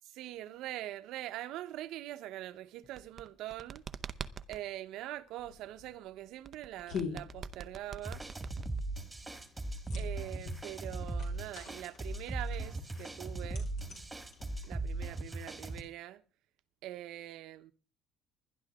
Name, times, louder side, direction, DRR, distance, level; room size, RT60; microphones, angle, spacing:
voice 1, 0.2-3.8 4.5-8.2 10.0-13.7 14.7-16.2 16.8-17.7, right 14 dB, 75° right, 1.0 m, -43 dB
sound 1, 2.8-4.6 6.4-9.0, right 6 dB, 30° right, 0.6 m, -44 dB
sound 2, 5.4-14.9, left 6 dB, 60° left, 5.1 m, -46 dB
sound 3, 8.0-15.8, right 2 dB, 10° right, 1.8 m, -39 dB
20.0 x 11.5 x 3.7 m
cardioid pair, 145°, 0 cm